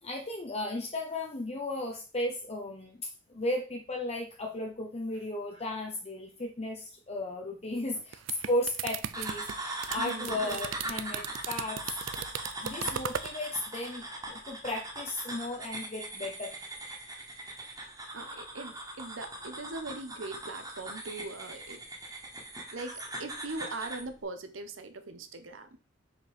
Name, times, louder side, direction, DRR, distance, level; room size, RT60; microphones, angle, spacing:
voice 1, 0.0-12.0 12.6-16.6, left 1 dB, 35° left, 1 dB, 0.9 m, -35 dB
sound 1, 7.9-13.3, right 9 dB, 70° right, 0.4 m, -37 dB
sound 2, 9.1-24.1, right 1 dB, 20° right, 1.6 m, -40 dB
voice 2, 10.0-10.6 12.6-12.8 17.4-21.8 22.7-25.8, right 2 dB, 85° right, 9 dB, 0.9 m, -41 dB
5.2 x 4.6 x 5.1 m, 0.35 s
head